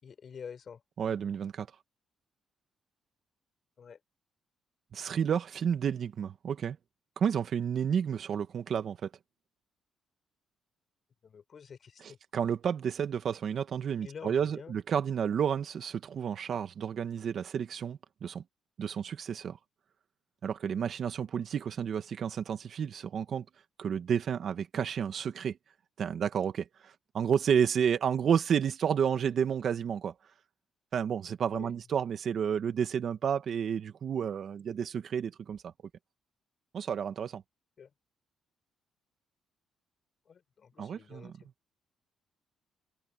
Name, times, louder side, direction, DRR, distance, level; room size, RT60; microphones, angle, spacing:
voice 1, 0.0-0.8 3.8-4.0 11.2-12.2 14.0-14.8 31.5-31.7 37.8-37.9 40.3-41.5, left 6 dB, 50° left, 4.2 m, -48 dB
voice 2, 1.0-1.7 4.9-6.8 7.2-9.1 12.3-18.4 18.8-19.6 20.4-23.5 23.8-25.6 26.0-30.1 30.9-35.7 36.7-37.4 40.8-41.3, right 8 dB, 60° right, 1.9 m, -31 dB
cardioid pair, 90°, 0 cm